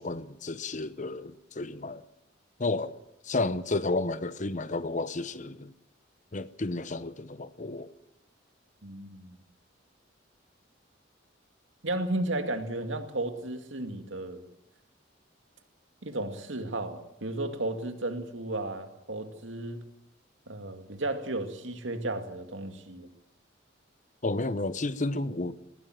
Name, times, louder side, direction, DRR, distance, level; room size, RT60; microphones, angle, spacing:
voice 1, 0.0-2.0 2.6-2.9 3.2-5.7 6.3-7.9 24.2-25.6, left 2 dB, 40° left, 0.9 m, -31 dB
voice 2, 8.8-9.4 11.8-14.4 16.0-19.8 20.5-23.1, right 2 dB, 85° right, 2.3 m, -34 dB
19.0 x 15.0 x 9.1 m
head